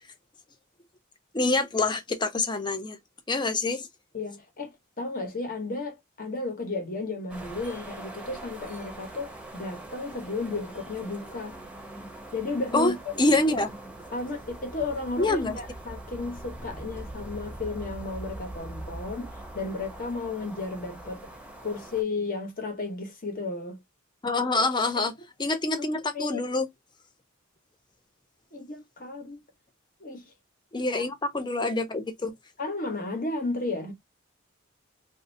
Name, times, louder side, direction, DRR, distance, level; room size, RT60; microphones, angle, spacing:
voice 1, 1.3-3.0 3.3-3.9 12.7-13.7 15.2-15.6 24.2-25.1 25.4-26.7 30.7-32.3, left 2 dB, 20° left, 0.6 m, -26 dB
voice 2, 4.1-11.6 12.3-13.2 14.1-21.3 21.6-23.8 25.8-25.9 26.1-26.4 28.5-29.4 30.0-30.3 30.9-31.1 32.6-33.9, left 3 dB, 45° left, 1.2 m, -33 dB
sound 1, 7.3-22.0, right 1 dB, 5° right, 0.8 m, -42 dB
3.1 x 2.7 x 2.7 m
head